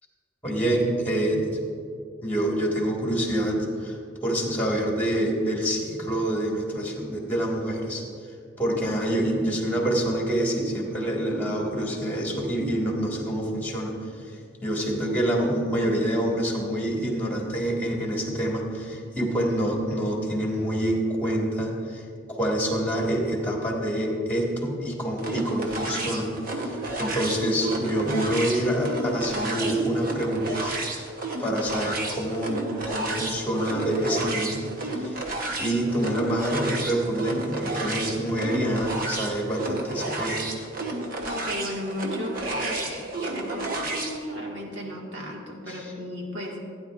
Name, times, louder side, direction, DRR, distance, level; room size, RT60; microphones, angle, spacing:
voice 1, 0.4-1.6 2.2-8.0 8.6-13.9 14.6-22.0 22.3-30.7 31.4-35.2 35.6-40.4 45.7-45.9, right 1 dB, 10° left, -2 dB, 1.9 m, -26 dB
sound 1, 25.2-44.2, right 2 dB, 45° right, 1.1 m, -32 dB
voice 2, 41.2-46.7, equal, 65° right, -2 dB, 2.0 m, -34 dB
16.0 x 9.7 x 2.6 m, 2.3 s
head